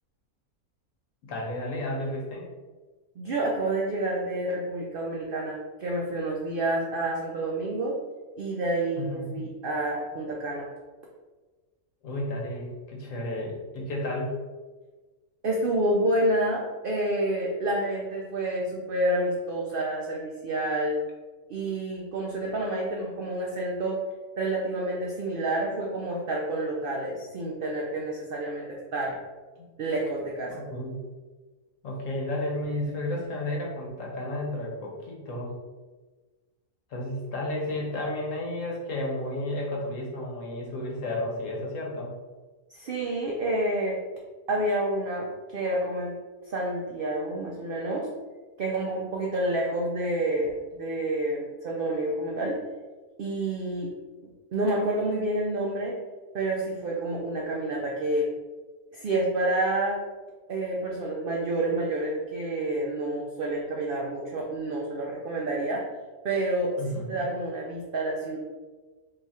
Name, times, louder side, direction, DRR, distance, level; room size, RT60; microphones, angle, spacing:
voice 1, 1.2-2.4 9.0-9.5 12.0-14.4 29.6-29.7 30.4-31.0 31.8-35.5 36.9-42.1 66.8-67.2, left 1 dB, 65° left, -2 dB, 1.1 m, -32 dB
voice 2, 3.2-8.0 8.4-10.7 15.4-21.0 21.5-24.0 24.4-29.2 29.8-30.6 42.7-44.0 44.5-46.2 46.5-48.1 48.6-52.6 53.2-53.9 54.5-56.0 56.3-58.3 58.9-60.0 60.5-65.9 66.2-68.4, right 1 dB, 85° right, -2 dB, 0.4 m, -29 dB
2.8 x 2.4 x 4.0 m, 1.3 s
omnidirectional pair, 1.5 m